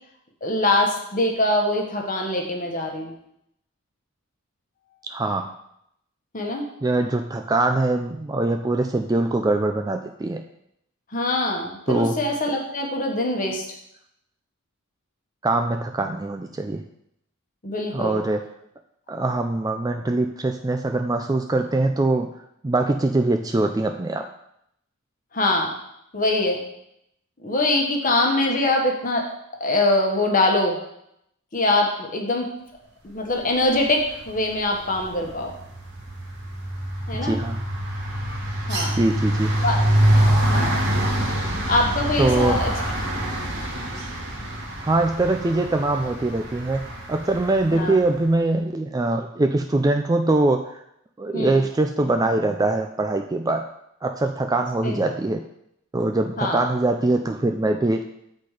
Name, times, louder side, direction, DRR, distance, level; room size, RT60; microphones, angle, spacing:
voice 1, 0.4-3.1 6.3-6.7 11.1-13.6 17.6-18.2 25.3-25.7 26.1-26.6 27.4-29.3 29.6-30.8 31.5-32.5 33.0-35.5 37.1-37.4 38.7-39.0 39.6-39.9 40.3-40.9 41.7-42.7 47.7-48.0 51.3-51.6 54.8-55.1 56.4-56.7, left 2 dB, 40° left, 1 dB, 1.2 m, -23 dB
voice 2, 5.1-5.5 6.8-10.4 11.9-12.2 15.4-16.8 17.9-18.4 19.1-22.3 22.6-24.2 37.2-37.6 39.0-39.5 42.2-42.6 44.8-50.6 51.2-53.7 54.0-55.4 55.9-58.0, right 2 dB, 15° right, 5 dB, 0.3 m, -22 dB
sound 1, 34.0-34.4 34.7-47.8, right 1 dB, 50° right, 1.5 m, -25 dB
8.3 x 4.3 x 4.8 m, 0.76 s
head